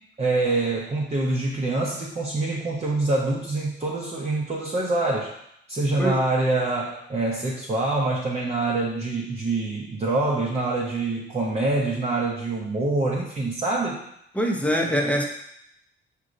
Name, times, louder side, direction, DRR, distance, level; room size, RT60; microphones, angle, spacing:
voice 1, 0.2-5.3 5.7-14.0, right 2 dB, 30° right, -4 dB, 0.8 m, -25 dB
voice 2, 14.3-15.2, equal, 5° left, 1 dB, 0.8 m, -23 dB
4.9 x 2.8 x 3.8 m, 0.76 s
cardioid pair, 90°, 20 cm